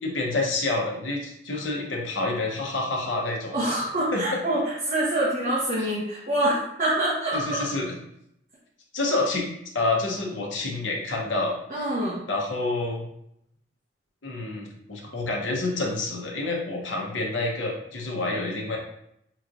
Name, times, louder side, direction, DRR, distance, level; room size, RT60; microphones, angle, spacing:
voice 1, 0.0-3.5 4.1-4.3 5.8-5.9 7.3-7.9 8.9-9.5 9.7-11.6 12.3-13.0 14.2-18.8, left 2 dB, 85° left, -1 dB, 1.0 m, -28 dB
voice 2, 3.5-7.7 11.7-12.2, right 1 dB, 40° right, -9 dB, 1.0 m, -26 dB
5.0 x 3.1 x 2.5 m, 0.77 s
head